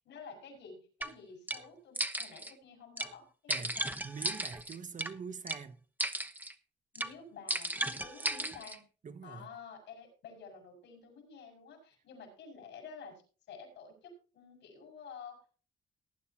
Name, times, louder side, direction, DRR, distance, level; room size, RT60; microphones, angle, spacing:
voice 1, 0.1-3.9 6.9-8.8 9.2-13.2 13.5-15.4, left 5 dB, 80° left, 5.4 m, -50 dB
sound 1, 1.0-1.1 1.5-1.6 1.9-2.5 3.0-3.1 3.5-5.1 5.5-5.6 6.0-6.5 6.9-7.1 7.5-8.8, right 1 dB, 10° right, 1.0 m, -35 dB
voice 2, 4.0-5.8 9.0-9.5, right 5 dB, 45° right, 1.3 m, -44 dB
18.5 x 9.5 x 2.9 m
cardioid pair, 80°, 19 cm